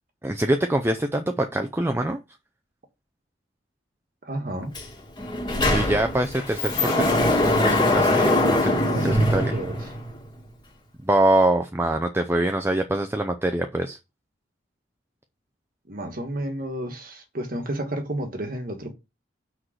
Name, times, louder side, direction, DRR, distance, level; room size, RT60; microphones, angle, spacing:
voice 1, 0.2-2.2 5.7-8.8 9.0-9.6 11.0-14.0, right 1 dB, 10° right, 0.5 m, -24 dB
voice 2, 4.2-4.7 8.9-9.8 15.9-18.9, right 1 dB, 45° right, 1.3 m, -31 dB
Sliding door, 4.7-4.9 5.2-10.2, left 1 dB, 20° left, 2.1 m, -22 dB
6.2 x 4.7 x 6.4 m
head